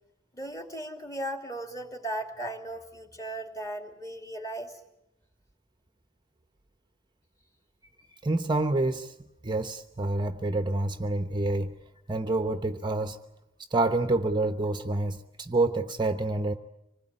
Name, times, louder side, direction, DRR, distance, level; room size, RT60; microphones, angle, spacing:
voice 1, 0.3-4.8, right 1 dB, 15° left, 5 dB, 2.9 m, -37 dB
voice 2, 8.2-9.1 9.4-11.7 12.1-13.2 13.7-16.5, right 2 dB, 25° right, 8 dB, 0.9 m, -27 dB
26.0 x 20.0 x 9.8 m, 0.87 s
head